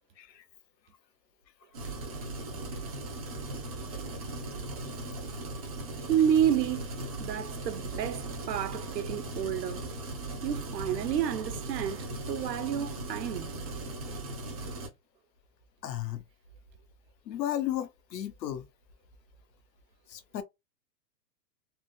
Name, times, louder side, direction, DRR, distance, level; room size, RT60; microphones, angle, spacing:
sound 1, 1.7-14.9, right 2 dB, 25° right, 0.5 m, -38 dB
voice 1, 6.1-9.9 10.4-13.5, right 9 dB, 80° right, 0.9 m, -30 dB
voice 2, 15.8-16.2 17.3-18.7 20.1-20.4, left 12 dB, 85° left, 0.9 m, -34 dB
3.7 x 2.1 x 2.2 m
hypercardioid pair, 170°, 49 cm